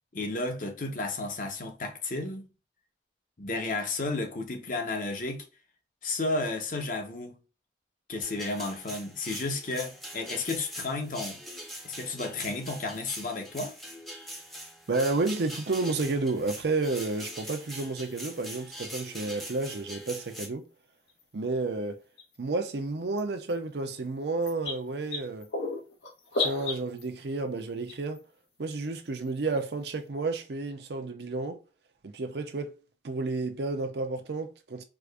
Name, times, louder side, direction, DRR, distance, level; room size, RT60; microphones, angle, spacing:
voice 1, 0.1-2.5 3.4-5.4 6.0-7.4 8.1-11.4 11.8-13.8, left 3 dB, 50° left, 0.9 m, -32 dB
sound 1, 8.2-20.5, equal, ahead, 0.6 m, -43 dB
voice 2, 14.9-20.7 21.3-22.0 22.4-25.5 26.4-28.2 28.6-31.6 32.0-32.7 33.0-34.8, right 3 dB, 70° right, 0.6 m, -31 dB
sound 2, 16.8-16.9 17.7-18.1 19.6-19.7 21.1-21.2 22.2-22.3 23.2-23.3 23.5-23.6 24.0-24.1 24.4-27.1 27.9-28.2 29.2-29.3 29.6-29.7, left 3 dB, 85° left, 1.4 m, -33 dB
4.8 x 2.5 x 2.3 m
head